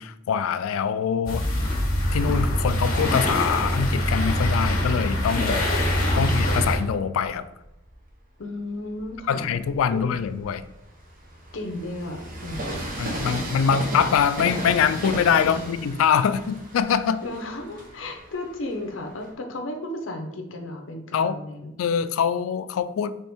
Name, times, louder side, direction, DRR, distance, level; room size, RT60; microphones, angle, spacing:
voice 1, 0.0-1.4 2.1-5.6 6.2-7.5 9.3-10.6 13.0-17.2 21.1-21.4 21.8-23.2, left 7 dB, 85° left, 13 dB, 0.3 m, -24 dB
sound 1, 1.3-6.8, left 1 dB, 45° left, 1.5 m, -23 dB
Train, 6.4-8.1 8.7-19.3, right 1 dB, 45° right, 0.9 m, -36 dB
voice 2, 8.4-9.5 9.9-10.1 11.5-12.9 15.4-15.8 17.2-21.7, left 1 dB, 65° left, 4 dB, 0.7 m, -34 dB
4.3 x 3.4 x 3.5 m, 0.90 s
head